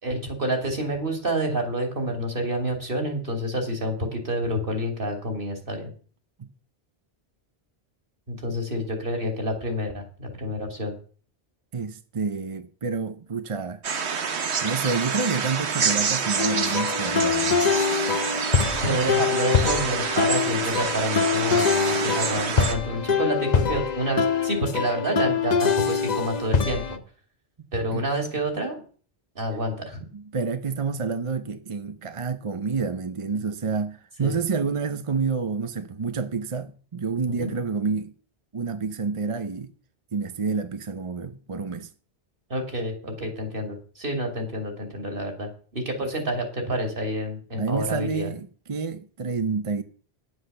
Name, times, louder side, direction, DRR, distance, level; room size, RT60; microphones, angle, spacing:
voice 1, 0.0-5.9 8.3-11.0 18.8-27.0 27.7-28.8 29.3-30.0 34.2-34.4 37.4-37.5 42.5-48.3, right 1 dB, 55° right, 2.9 m, -28 dB
voice 2, 11.7-13.8 14.6-17.6 27.9-28.1 30.1-38.1 38.5-39.7 40.1-41.9 47.5-49.8, right 5 dB, 35° right, 0.6 m, -28 dB
sound 1, 13.8-22.7, right 6 dB, 90° right, 1.4 m, -27 dB
sound 2, 16.4-27.0, left 6 dB, 45° left, 0.8 m, -24 dB
9.9 x 8.1 x 6.7 m
omnidirectional pair, 1.1 m